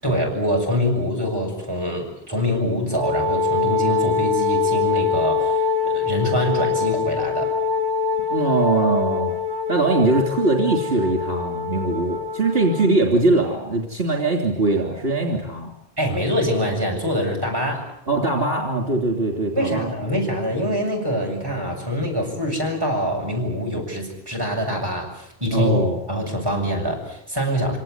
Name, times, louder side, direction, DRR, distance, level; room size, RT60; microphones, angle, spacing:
voice 1, 0.0-7.6 16.0-17.9 19.6-25.7 26.1-27.8, equal, 20° right, 0 dB, 7.4 m, -24 dB
Wind instrument woodwind instrument, 2.9-12.9, left 5 dB, 20° left, 2.8 m, -24 dB
voice 2, 8.3-9.3 9.7-15.7 18.1-19.9 25.5-26.0, right 3 dB, 65° right, 2 dB, 3.4 m, -21 dB
25.5 x 18.5 x 9.6 m, 0.76 s
omnidirectional pair, 1.1 m